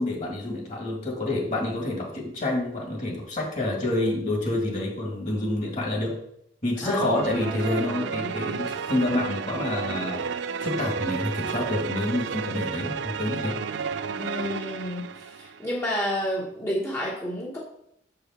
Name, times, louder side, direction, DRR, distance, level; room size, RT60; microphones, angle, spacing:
voice 1, 0.0-6.2 6.6-10.2 10.6-13.6, left 1 dB, 45° left, -1 dB, 2.0 m, -28 dB
voice 2, 6.8-8.3 14.2-15.0 15.4-17.6, equal, 15° left, -5 dB, 1.1 m, -31 dB
sound 1, 7.1-15.7, right 6 dB, 75° right, 0.4 m, -32 dB
7.0 x 4.9 x 4.4 m, 0.74 s
head